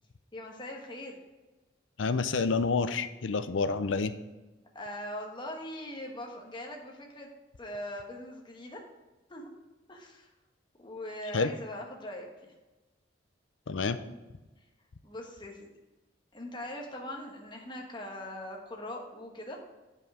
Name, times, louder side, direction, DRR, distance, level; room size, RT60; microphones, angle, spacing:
voice 1, 0.3-1.2 4.7-7.3 7.6-8.8 9.3-9.5 9.9-10.3 10.8-12.5 15.0-15.7 16.3-19.6, left 1 dB, 25° left, 0 dB, 1.4 m, -41 dB
voice 2, 2.0-4.1 11.3-11.5 13.7-14.0, left 4 dB, 85° left, 11 dB, 0.6 m, -28 dB
9.3 x 5.4 x 4.9 m, 1.1 s
head